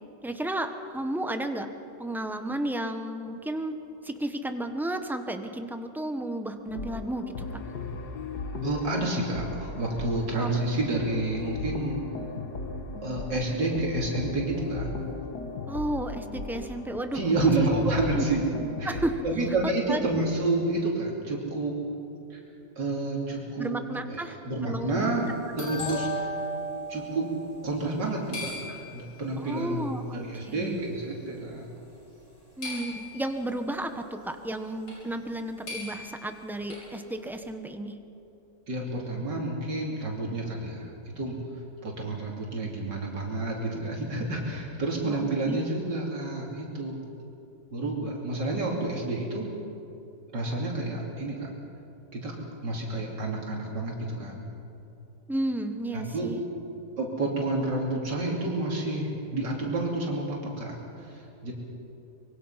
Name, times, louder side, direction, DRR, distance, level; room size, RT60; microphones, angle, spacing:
voice 1, 0.2-1.7 2.0-3.8 4.0-7.5 10.4-10.5 15.7-17.7 18.1-18.3 18.8-19.2 19.9-20.0 23.6-25.1 25.6-25.9 29.4-30.0 30.5-30.8 32.6-37.9 45.0-45.6 55.3-56.4, right 1 dB, ahead, 6 dB, 0.8 m, -33 dB
sound 1, 6.7-19.1, left 3 dB, 65° left, 1.9 m, -37 dB
voice 2, 8.6-12.0 13.0-14.9 17.1-18.4 18.8-19.0 19.2-21.7 22.3-22.4 22.8-23.7 24.1-25.2 25.6-26.1 26.9-27.3 27.6-31.7 38.7-40.9 41.2-41.4 41.8-47.1 47.7-49.5 50.3-51.5 52.1-52.3 52.6-54.4 55.9-56.3 57.0-61.5, right 2 dB, 75° right, -2 dB, 3.6 m, -29 dB
sound 2, 25.0-28.1 28.3-29.2 30.2-30.3 30.8-31.2 32.6-33.4 34.9-35.0 35.3-35.4 35.7-36.9, equal, 85° left, 8.1 m, -37 dB
25.0 x 22.5 x 5.8 m, 2.9 s
omnidirectional pair, 1.9 m